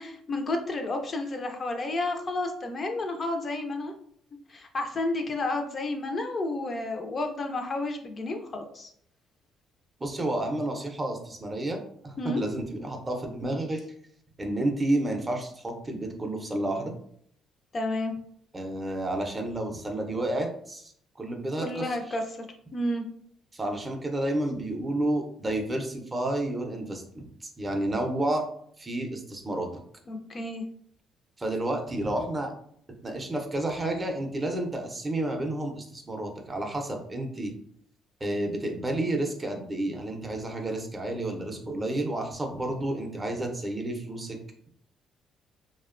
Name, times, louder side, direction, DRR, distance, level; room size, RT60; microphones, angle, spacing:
voice 1, 0.0-3.9 4.5-8.9 12.2-12.4 17.7-18.1 21.6-22.4 22.7-23.0 30.1-30.6, left 2 dB, 40° left, 4 dB, 0.4 m, -31 dB
voice 2, 10.0-13.8 14.4-16.9 18.5-22.0 23.5-28.5 28.8-29.7 31.4-32.5 33.0-37.5 38.2-44.4, right 1 dB, 20° right, 4 dB, 0.5 m, -30 dB
2.7 x 2.1 x 2.4 m, 0.64 s
cardioid pair, 95°, 0 cm